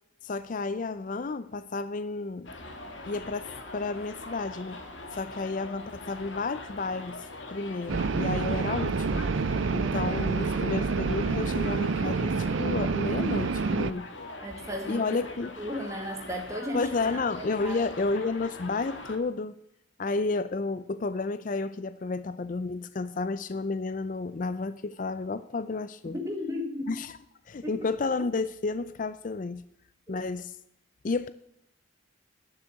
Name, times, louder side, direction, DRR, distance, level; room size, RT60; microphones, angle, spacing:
voice 1, 0.2-2.5 3.1-4.8 5.1-9.3 9.7-14.1 14.9-15.6 16.7-19.5 20.0-26.2 26.9-27.2 27.5-29.6 30.1-30.6 31.0-31.3, left 3 dB, 40° left, 14 dB, 0.4 m, -31 dB
Subway metro underground, 2.4-19.2, left 2 dB, 70° left, 1.7 m, -42 dB
sound 1, 7.9-13.9, right 4 dB, 75° right, 0.5 m, -28 dB
voice 2, 14.4-15.2 15.6-17.9 26.1-27.0 27.6-27.8 30.1-30.2, left 1 dB, 15° right, 1 dB, 1.8 m, -35 dB
11.5 x 6.7 x 8.3 m, 0.78 s
head